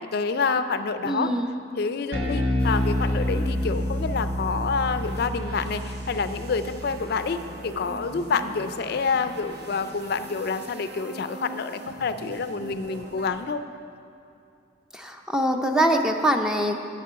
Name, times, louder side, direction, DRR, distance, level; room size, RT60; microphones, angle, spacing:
voice 1, 0.0-1.3 1.8-13.6, left 5 dB, 55° left, 10 dB, 0.4 m, -28 dB
voice 2, 1.0-1.5 14.9-16.8, right 1 dB, 5° right, 3 dB, 0.5 m, -23 dB
Bass guitar, 2.1-8.6, equal, 75° right, 1.4 m, -29 dB
sound 1, 2.6-13.5, right 2 dB, 60° right, 0.9 m, -42 dB
7.5 x 6.7 x 8.1 m, 2.5 s
head